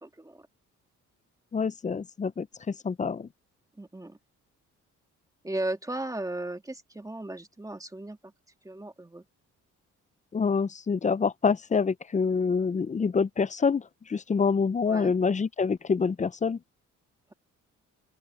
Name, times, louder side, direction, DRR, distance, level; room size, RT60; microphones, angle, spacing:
voice 1, 0.0-0.5 3.8-4.2 5.4-8.3 8.6-9.2 14.9-15.1, right 1 dB, 10° right, 2.3 m, -36 dB
voice 2, 1.5-3.3 10.3-13.8 14.1-16.6, left 5 dB, 25° left, 0.6 m, -26 dB
open air
cardioid pair, 90°, 30 cm